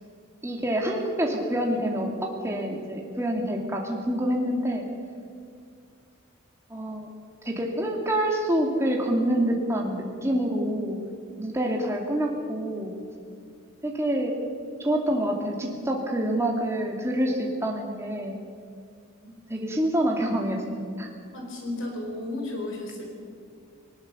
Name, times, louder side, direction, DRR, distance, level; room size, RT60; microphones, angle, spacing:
voice 1, 0.4-4.8 6.7-7.1 7.4-11.0 11.4-12.9 13.8-14.4 14.8-18.4 19.5-21.1, right 1 dB, 15° right, 0 dB, 2.3 m, -27 dB
voice 2, 21.3-23.0, left 2 dB, 60° left, 1 dB, 4.9 m, -33 dB
20.0 x 19.0 x 6.9 m, 2.2 s
head